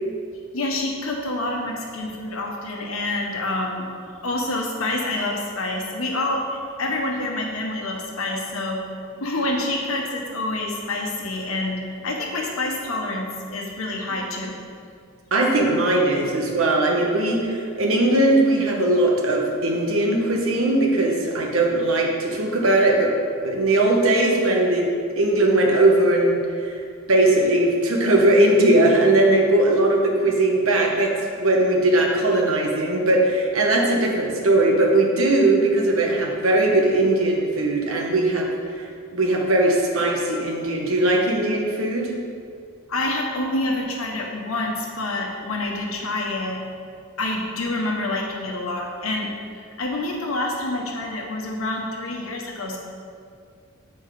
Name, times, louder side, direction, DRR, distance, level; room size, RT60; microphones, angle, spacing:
voice 1, 0.5-3.9 4.2-8.8 9.2-14.5 42.9-46.6 47.2-52.8, left 2 dB, 75° left, 0 dB, 1.1 m, -27 dB
voice 2, 15.3-23.1 23.4-24.9 25.2-26.8 27.1-31.1 31.4-38.5 39.1-42.1, right 2 dB, 70° right, 0 dB, 1.1 m, -19 dB
7.7 x 4.5 x 4.9 m, 2.3 s
head